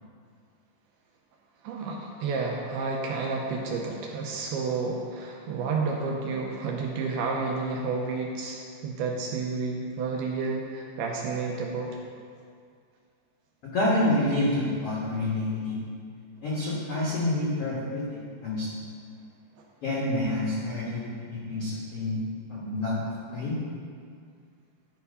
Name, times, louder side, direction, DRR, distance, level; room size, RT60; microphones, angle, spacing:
voice 1, 1.6-11.9, right 4 dB, 80° right, 0 dB, 2.4 m, -30 dB
voice 2, 13.7-15.8 16.4-18.1 18.4-18.7 19.8-22.2 22.5-23.0 23.3-23.6, left 1 dB, 80° left, -7 dB, 1.3 m, -28 dB
12.0 x 4.6 x 5.3 m, 2.2 s
omnidirectional pair, 5.1 m